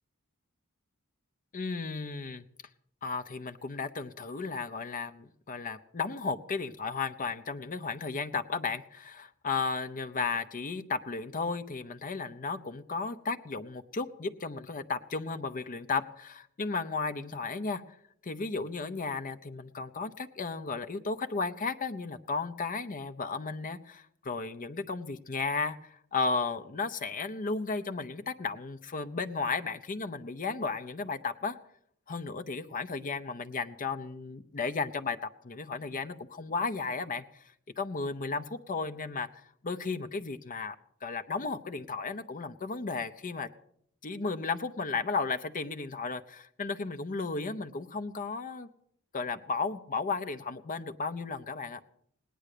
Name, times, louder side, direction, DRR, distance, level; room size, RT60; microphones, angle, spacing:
voice 1, 1.5-2.4 3.0-18.0 18.2-31.6 32.1-37.4 37.8-39.3 39.6-40.7 41.0-43.5 44.0-48.7 49.1-51.8, left 4 dB, 40° left, 10 dB, 0.7 m, -34 dB
18.0 x 10.0 x 6.7 m, 0.68 s
head